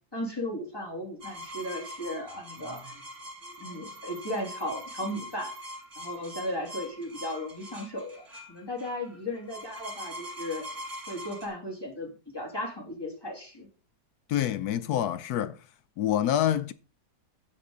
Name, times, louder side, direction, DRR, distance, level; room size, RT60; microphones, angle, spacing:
voice 1, 0.1-3.0 3.4-5.5 6.0-10.7 11.1-13.7, left 1 dB, 15° left, 2.8 m, -36 dB
sound 1, 1.2-11.5, equal, 40° right, 2.7 m, -43 dB
voice 2, 14.3-15.6 16.0-16.7, left 11 dB, 70° left, 1.0 m, -26 dB
15.0 x 5.2 x 3.9 m
omnidirectional pair, 1.9 m